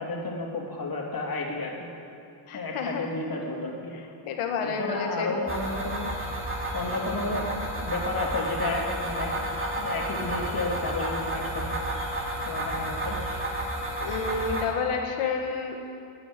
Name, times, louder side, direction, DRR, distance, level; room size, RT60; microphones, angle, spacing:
voice 1, 0.0-1.9 2.5-3.9 4.6-6.1 6.7-9.4 9.8-11.7 12.4-13.2, left 2 dB, 45° left, 0 dB, 3.1 m, -32 dB
voice 2, 2.5-3.1 4.3-5.4 14.0-15.8, left 5 dB, 90° left, 3 dB, 1.8 m, -30 dB
sound 1, 5.5-14.6, right 1 dB, 25° right, 3.0 m, -31 dB
12.0 x 9.8 x 9.6 m, 2.6 s
cardioid pair, 75°, 49 cm